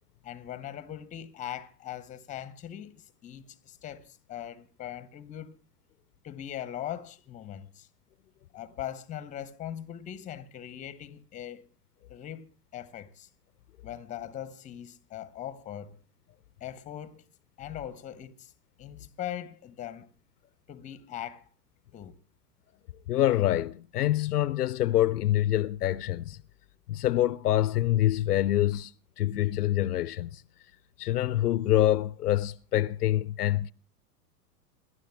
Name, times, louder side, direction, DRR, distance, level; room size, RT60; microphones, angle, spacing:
voice 1, 0.2-5.6 6.2-7.9 8.5-11.7 12.1-12.5 12.7-13.3 13.8-16.0 16.6-17.2 17.6-18.5 18.8-20.1 20.7-21.5 21.9-22.2, left 11 dB, 15° left, 0.8 m, -40 dB
voice 2, 23.1-26.4 26.9-28.9 29.2-30.4 31.0-33.7, left 13 dB, 70° left, 0.6 m, -26 dB
27.0 x 12.5 x 2.2 m
figure-of-eight pair, 100°, 48 cm